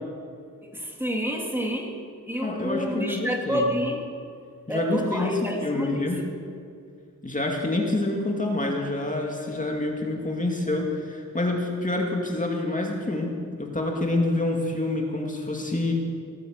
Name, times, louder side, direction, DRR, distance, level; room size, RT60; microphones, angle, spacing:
voice 1, 0.7-1.9 2.3-4.0 4.7-6.1, equal, 5° right, 0 dB, 2.5 m, -28 dB
voice 2, 2.4-3.6 4.7-6.2 7.2-15.9, left 2 dB, 25° left, 0 dB, 2.4 m, -27 dB
18.5 x 9.1 x 7.9 m, 2.3 s
cardioid pair, 75°, 33 cm